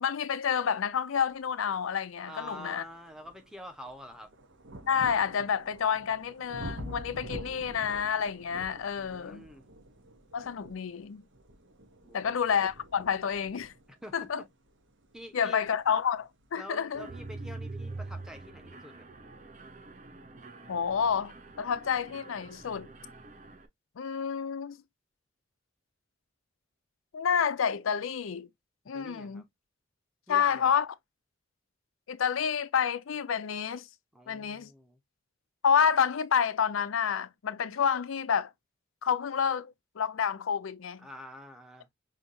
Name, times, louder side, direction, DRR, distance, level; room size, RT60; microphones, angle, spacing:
voice 1, 0.0-2.8 4.9-9.4 10.3-11.2 12.1-13.7 14.1-14.4 15.3-17.1 20.7-22.9 24.0-24.8 27.1-28.5 28.9-29.4 30.3-30.9 32.1-33.9 34.3-34.7 35.6-38.5 39.0-41.1, left 7 dB, 90° left, 0.5 m, -29 dB
sound 1, 1.7-1.8 2.4-17.1 18.0-18.1, right 1 dB, 70° right, 1.0 m, -47 dB
voice 2, 2.3-4.3 9.0-9.6 12.0-12.3 13.9-14.5 15.1-15.6 16.5-19.1 28.9-29.4 30.3-30.8 34.1-35.0 41.0-41.9, equal, 5° right, 0.8 m, -46 dB
Mechanisms, 16.9-23.7, right 3 dB, 35° right, 0.7 m, -45 dB
5.7 x 2.8 x 2.7 m
head